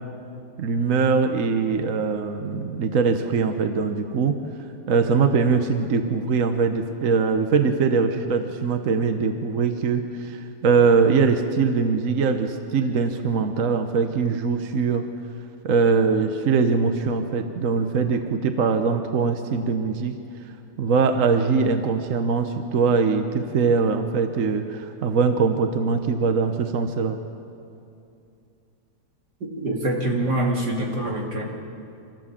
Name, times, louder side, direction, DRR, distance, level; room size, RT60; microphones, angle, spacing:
voice 1, 0.6-4.4 4.9-15.1 15.6-20.1 20.8-27.2, right 5 dB, 55° right, 7 dB, 1.3 m, -22 dB
voice 2, 29.5-31.4, right 1 dB, 85° right, -1 dB, 3.4 m, -25 dB
25.5 x 15.0 x 7.5 m, 2.6 s
omnidirectional pair, 1.8 m